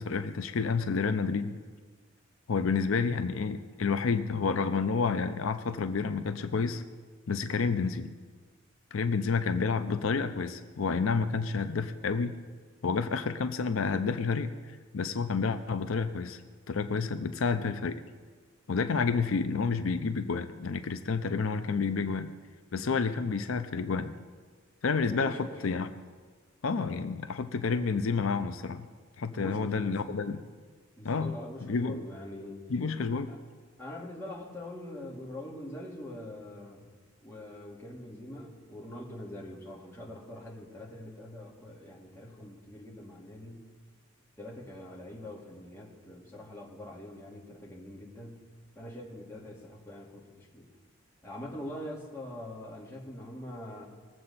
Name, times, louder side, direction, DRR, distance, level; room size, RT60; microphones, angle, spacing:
voice 1, 0.0-1.6 2.5-6.8 7.3-8.1 8.9-12.4 12.8-14.5 14.9-16.4 16.7-18.0 18.7-22.3 22.7-24.1 24.8-25.4 25.6-25.9 26.6-28.9 29.2-30.4 31.0-31.3 31.6-32.0 32.7-33.3, left 5 dB, 85° left, 10 dB, 0.6 m, -29 dB
voice 2, 25.1-25.6 29.4-30.3 31.0-32.7 33.3-33.4 33.8-36.9 37.2-43.7 44.4-48.5 48.8-50.7 51.2-53.8, left 1 dB, 15° left, -4 dB, 2.2 m, -43 dB
20.0 x 7.6 x 4.1 m, 1.5 s
head